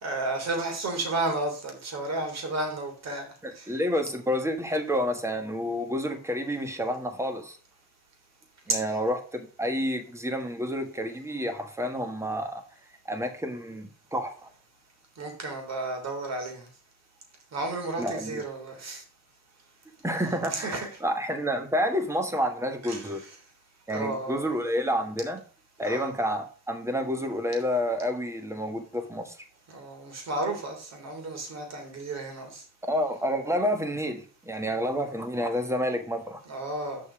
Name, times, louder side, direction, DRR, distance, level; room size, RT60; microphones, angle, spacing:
voice 1, 0.0-3.7 8.7-8.8 15.2-16.7 17.5-19.0 20.5-20.9 22.8-23.2 23.9-24.5 25.8-26.2 29.7-32.6 36.5-37.0, right 2 dB, 50° right, 3 dB, 3.3 m, -32 dB
voice 2, 3.4-7.6 8.7-12.6 13.1-14.5 18.0-18.4 20.0-23.2 23.9-25.4 25.8-29.3 32.9-36.4, equal, 10° right, 6 dB, 1.5 m, -29 dB
7.3 x 5.3 x 4.9 m, 0.38 s
cardioid pair, 115°, 33 cm